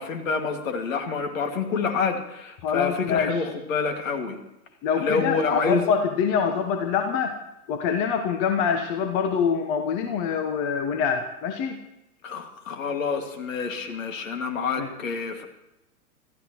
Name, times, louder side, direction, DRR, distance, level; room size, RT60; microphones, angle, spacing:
voice 1, 0.0-4.4 5.0-5.9 12.2-15.5, left 5 dB, 60° left, 5 dB, 2.4 m, -27 dB
voice 2, 2.6-3.5 4.8-7.3 7.7-11.8 14.8-14.9, left 6 dB, 35° left, 6 dB, 1.2 m, -25 dB
26.0 x 14.0 x 3.1 m, 0.90 s
figure-of-eight pair, 100°, 46 cm